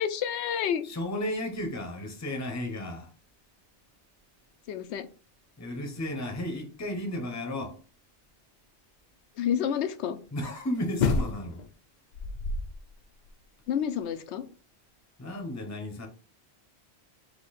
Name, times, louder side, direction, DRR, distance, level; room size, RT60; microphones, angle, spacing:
voice 1, 0.0-0.9 4.7-5.1 9.4-10.2 13.7-14.4, left 8 dB, 80° left, 0.9 m, -29 dB
voice 2, 0.8-3.1 5.6-7.7 10.3-11.6 15.2-16.1, left 1 dB, 15° left, 0.8 m, -33 dB
sound 1, 11.0-11.7 12.1-12.9 13.3-13.4, left 4 dB, 55° left, 0.5 m, -28 dB
4.3 x 2.8 x 4.1 m
omnidirectional pair, 1.1 m